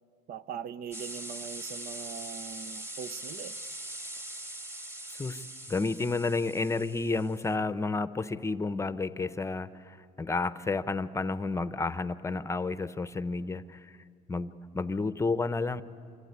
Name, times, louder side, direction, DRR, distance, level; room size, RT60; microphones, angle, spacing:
voice 1, 0.3-3.6, right 8 dB, 60° right, 15 dB, 0.7 m, -41 dB
sound 1, 0.9-7.5, right 1 dB, 15° right, 1.9 m, -42 dB
voice 2, 5.1-14.0 14.3-15.8, left 3 dB, 15° left, 13 dB, 0.7 m, -31 dB
26.0 x 23.5 x 9.5 m, 2.5 s
cardioid pair, 110°, 17 cm